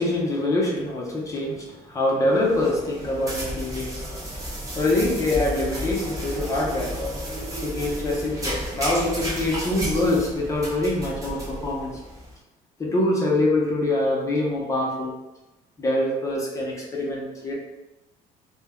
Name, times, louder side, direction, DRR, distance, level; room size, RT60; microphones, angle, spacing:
voice 1, 0.0-7.0 7.6-11.9 12.8-15.1 15.8-17.5, left 1 dB, 20° left, -3 dB, 0.7 m, -25 dB
sound 1, 2.3-12.3, equal, 20° right, 0.7 m, -32 dB
2.2 x 2.1 x 3.5 m, 1.0 s
cardioid pair, 130°, 15 cm